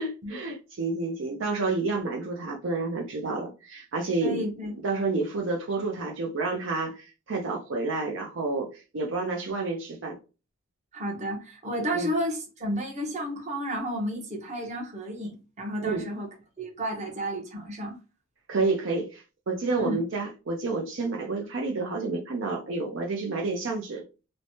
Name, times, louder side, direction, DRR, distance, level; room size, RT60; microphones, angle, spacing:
voice 1, 0.0-4.4 4.8-10.2 11.9-12.1 15.8-16.1 18.5-24.0, right 3 dB, 60° right, 0.5 m, -29 dB
voice 2, 4.2-4.8 10.9-16.3 16.6-18.0 19.8-20.0, equal, 35° right, 0.8 m, -32 dB
3.1 x 2.1 x 2.7 m
head